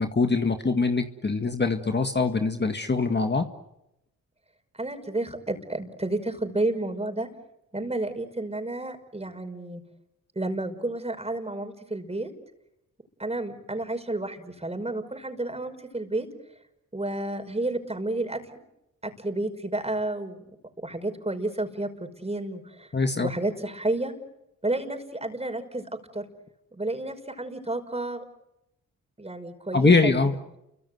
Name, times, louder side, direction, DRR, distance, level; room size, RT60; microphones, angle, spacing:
voice 1, 0.0-3.5 22.9-23.3 29.7-30.3, left 4 dB, 30° left, 6 dB, 2.0 m, -23 dB
voice 2, 4.7-7.3 7.7-9.8 10.4-12.3 13.2-16.3 16.9-18.4 19.0-20.4 20.8-22.9 23.2-24.1 24.6-26.3 26.7-28.3 29.2-30.1, right 2 dB, 20° right, 7 dB, 5.6 m, -31 dB
29.0 x 24.5 x 8.0 m, 0.88 s
cardioid pair, 60°, 33 cm